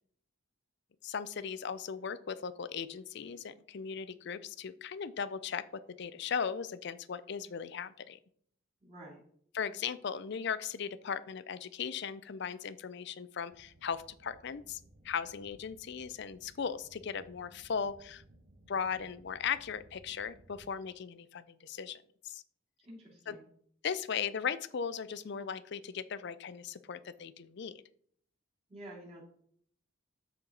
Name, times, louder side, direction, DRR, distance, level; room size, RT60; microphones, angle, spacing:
voice 1, 1.0-8.2 9.5-14.8 15.0-18.2 18.7-22.4 23.3-23.4 23.8-27.7, left 6 dB, 55° left, 15 dB, 0.4 m, -38 dB
voice 2, 8.8-9.2 22.8-23.4 28.7-29.2, right 1 dB, 30° right, -5 dB, 3.2 m, -49 dB
sound 1, 13.5-20.7, right 1 dB, 55° right, 2.1 m, -60 dB
13.0 x 4.4 x 3.9 m, 0.64 s
head